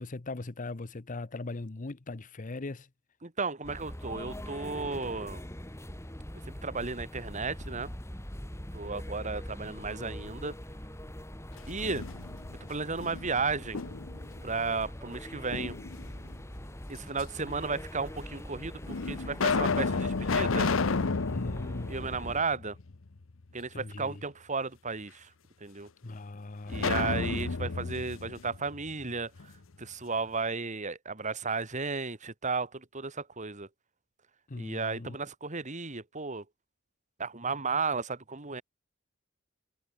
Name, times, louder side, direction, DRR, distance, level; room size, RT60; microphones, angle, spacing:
voice 1, 0.0-2.9 21.3-22.0 23.7-24.2 26.0-27.3 34.5-35.2, left 2 dB, 40° left, 0.8 m, -40 dB
voice 2, 3.2-5.4 6.4-7.9 8.7-10.5 11.7-12.0 12.6-13.8 14.4-15.8 16.9-20.7 21.9-22.8 23.5-25.3 25.6-25.9 26.7-29.5 29.8-33.7 34.6-36.4 37.2-38.6, right 4 dB, 40° right, 2.5 m, -34 dB
sound 1, 3.6-22.4, equal, 15° left, 2.7 m, -43 dB
sound 2, 11.6-12.6 13.0-14.3 15.5-16.3 17.2-17.3 18.2-18.3 18.9-23.0 23.3-23.4 26.7-29.5, left 4 dB, 85° left, 0.8 m, -31 dB
head